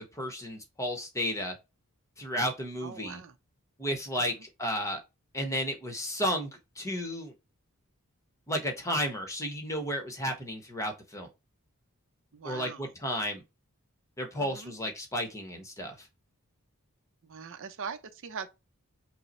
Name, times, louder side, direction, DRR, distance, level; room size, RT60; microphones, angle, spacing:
voice 1, 0.0-1.5 2.2-3.2 3.8-5.0 5.3-6.5 6.8-7.3 8.5-11.3 12.4-13.4 14.2-16.1, equal, 15° left, 0.9 m, -33 dB
voice 2, 2.8-3.3 4.4-4.5 12.3-12.9 14.4-14.8 17.2-18.5, right 6 dB, 60° right, 0.5 m, -41 dB
5.4 x 2.0 x 4.2 m
head